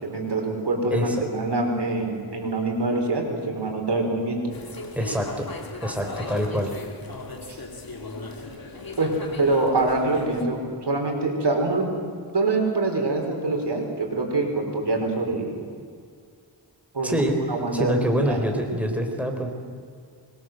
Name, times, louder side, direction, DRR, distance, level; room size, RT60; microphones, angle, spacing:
voice 1, 0.0-4.4 7.5-7.6 9.0-9.1 9.4-11.9 12.3-15.5 16.9-17.2 17.5-18.4, right 2 dB, 65° right, 2 dB, 5.2 m, -25 dB
voice 2, 0.9-1.2 5.0-5.5 5.8-6.7 17.0-17.4 17.7-19.5, equal, 5° right, 3 dB, 4.1 m, -25 dB
sound 1, 4.5-10.4, left 3 dB, 50° left, 3.0 m, -37 dB
25.0 x 22.0 x 7.8 m, 2.1 s
cardioid pair, 60°, 44 cm